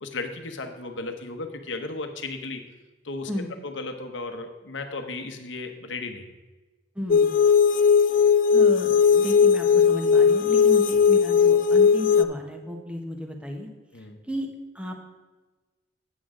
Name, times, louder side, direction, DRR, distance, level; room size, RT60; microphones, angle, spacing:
voice 1, 0.0-2.6 3.0-3.3 3.6-6.4 13.9-14.2, left 3 dB, 75° left, 6 dB, 1.0 m, -35 dB
voice 2, 6.9-7.4 8.1-8.2 8.5-13.7 14.0-14.5 14.7-15.0, left 1 dB, 5° right, 2 dB, 1.1 m, -34 dB
sound 1, 7.1-12.2, left 6 dB, 45° left, 0.3 m, -18 dB
9.1 x 8.1 x 3.7 m, 1.2 s
head